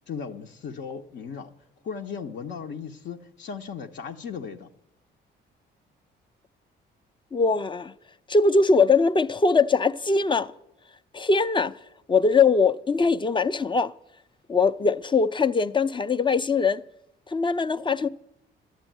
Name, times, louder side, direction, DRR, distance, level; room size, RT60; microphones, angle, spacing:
voice 1, 0.1-1.5 1.8-4.7, left 6 dB, 65° left, 0.8 m, -36 dB
voice 2, 7.3-7.9 8.3-10.5 11.1-11.7 12.1-13.9 14.5-16.8 17.3-18.1, left 4 dB, 25° left, 0.5 m, -21 dB
11.5 x 8.2 x 9.1 m
cardioid pair, 90°, 20 cm